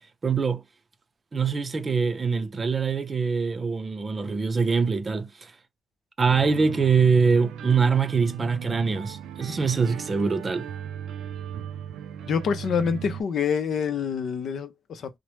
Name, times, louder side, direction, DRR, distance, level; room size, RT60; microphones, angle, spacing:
voice 1, 0.2-0.6 1.3-5.5 6.2-10.7, right 5 dB, 30° right, 0.5 m, -23 dB
sound 1, 6.2-13.2, right 8 dB, 85° right, 0.3 m, -37 dB
voice 2, 12.2-15.1, left 6 dB, 60° left, 0.6 m, -26 dB
2.9 x 2.1 x 3.1 m
cardioid pair, 90°, 0 cm